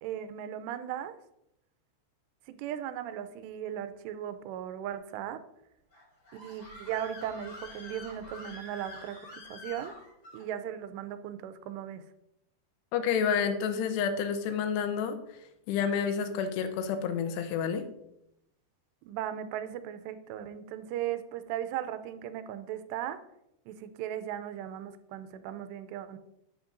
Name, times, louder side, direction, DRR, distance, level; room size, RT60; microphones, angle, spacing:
voice 1, 0.0-1.2 2.5-5.4 6.3-9.9 10.3-12.0 19.1-23.2 23.7-26.2, right 10 dB, 90° right, 11 dB, 2.8 m, -37 dB
Screaming, 5.9-10.4, left 2 dB, 35° left, 4.6 m, -47 dB
voice 2, 12.9-15.2 15.7-17.8, left 7 dB, 85° left, 8 dB, 2.9 m, -29 dB
10.5 x 7.8 x 2.5 m, 0.81 s
omnidirectional pair, 4.8 m